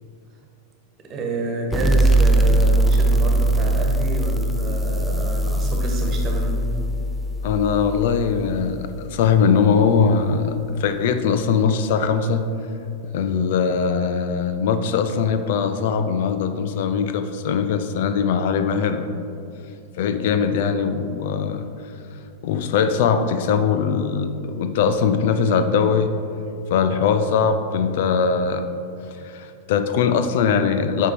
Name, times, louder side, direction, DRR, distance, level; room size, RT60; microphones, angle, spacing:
voice 1, 1.1-6.6, right 2 dB, 30° right, 0 dB, 1.4 m, -28 dB
sound 1, 1.7-9.0, right 1 dB, 5° right, 0.5 m, -20 dB
voice 2, 7.4-12.4 13.1-19.1 20.0-21.6 22.4-26.1 26.7-28.7 29.2-31.1, left 6 dB, 55° left, 9 dB, 0.5 m, -21 dB
8.1 x 5.5 x 4.7 m, 2.6 s
figure-of-eight pair, 90°, 0 cm